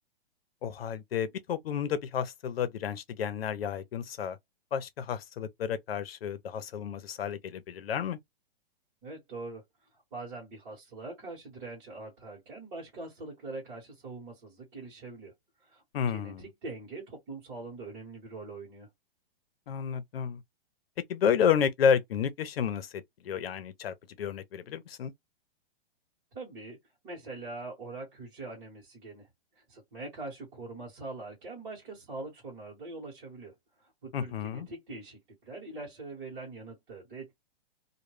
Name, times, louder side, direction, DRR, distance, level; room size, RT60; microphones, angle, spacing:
voice 1, 0.6-4.4 4.7-8.2 15.9-16.4 19.7-20.4 21.1-25.1 34.1-34.7, left 7 dB, 70° left, 0.7 m, -31 dB
voice 2, 9.0-9.6 10.1-15.3 15.6-15.8 16.1-18.9 26.3-26.8 27.0-29.3 29.6-33.5 33.8-37.3, right 3 dB, 25° right, 1.2 m, -43 dB
2.3 x 2.1 x 3.2 m
hypercardioid pair, 175°, 31 cm